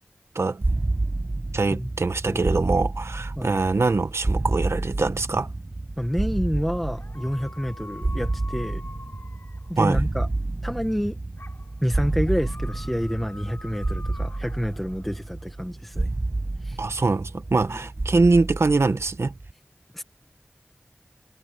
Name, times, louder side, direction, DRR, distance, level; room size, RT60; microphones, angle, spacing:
sound 1, 0.6-19.5, right 2 dB, 55° right, 6.1 m, -30 dB
voice 1, 1.5-5.5 9.8-10.0 16.8-19.3, right 3 dB, 80° right, 1.1 m, -23 dB
voice 2, 2.2-2.7 3.4-3.6 6.0-8.8 9.7-10.3 10.6-11.2 11.8-16.1 16.6-16.8 19.9-20.0, equal, 5° left, 1.6 m, -28 dB
sound 2, 6.2-10.3 11.4-15.6 16.2-17.7, left 2 dB, 65° left, 7.0 m, -47 dB
wide cardioid pair, 45°, 4 cm